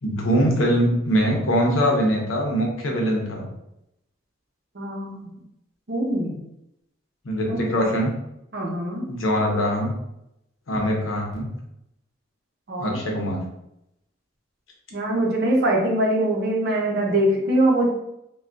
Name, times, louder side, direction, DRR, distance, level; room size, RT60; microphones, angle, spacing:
voice 1, 0.0-3.5 7.2-8.1 9.1-9.9 10.7-11.5 12.8-13.4, equal, 75° left, 0 dB, 0.8 m, -22 dB
voice 2, 4.7-5.3 5.9-6.3 7.5-7.9 8.5-9.1 10.7-10.8 12.7-13.0 14.9-17.8, right 1 dB, 50° right, -2 dB, 0.7 m, -23 dB
3.3 x 2.3 x 2.5 m, 0.82 s
head